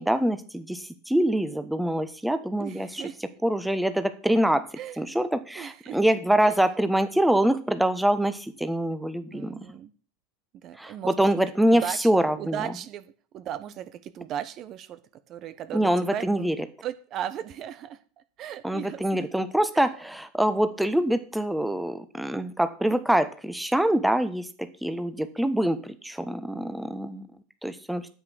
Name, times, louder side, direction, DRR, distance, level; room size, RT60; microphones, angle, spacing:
voice 1, 0.0-3.0 3.4-4.6 5.0-9.5 10.8-12.6 15.7-16.5 18.6-27.3 27.6-28.1, right 1 dB, 5° right, 11 dB, 1.2 m, -25 dB
voice 2, 2.6-3.2 4.8-5.0 5.5-6.0 6.4-6.6 9.3-9.9 10.5-11.4 11.7-12.1 12.4-15.0 15.3-16.5 16.8-18.0 18.4-19.3 19.7-19.9, right 10 dB, 45° right, 12 dB, 1.0 m, -36 dB
9.5 x 8.1 x 6.4 m, 0.40 s
hypercardioid pair, 85°, 0 cm